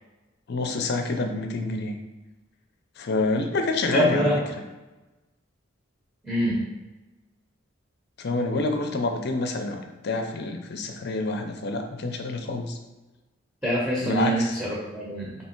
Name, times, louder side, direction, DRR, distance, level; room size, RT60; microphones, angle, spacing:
voice 1, 0.5-1.9 3.0-4.3 8.2-12.8 14.0-14.6, left 2 dB, 55° left, 5 dB, 0.5 m, -27 dB
voice 2, 3.9-4.4 6.2-6.7 13.6-15.4, equal, 5° right, -6 dB, 0.9 m, -25 dB
3.3 x 3.0 x 4.4 m, 1.1 s
head